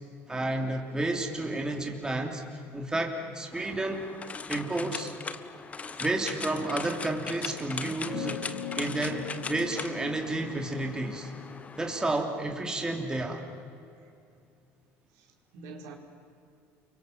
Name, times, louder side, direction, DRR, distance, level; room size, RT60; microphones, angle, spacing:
voice 1, 0.3-2.4 2.7-4.1 4.5-5.1 5.9-8.5 8.8-11.3 11.8-13.4, right 2 dB, 15° right, 2 dB, 3.1 m, -31 dB
sound 1, 3.5-12.2, left 5 dB, 25° left, 1.3 m, -40 dB
sound 2, 8.0-12.9, left 9 dB, 85° left, 2.4 m, -42 dB
voice 2, 15.1-15.9, right 3 dB, 80° right, 1 dB, 4.6 m, -47 dB
29.5 x 24.0 x 7.7 m, 2.5 s
cardioid pair, 115°, 6 cm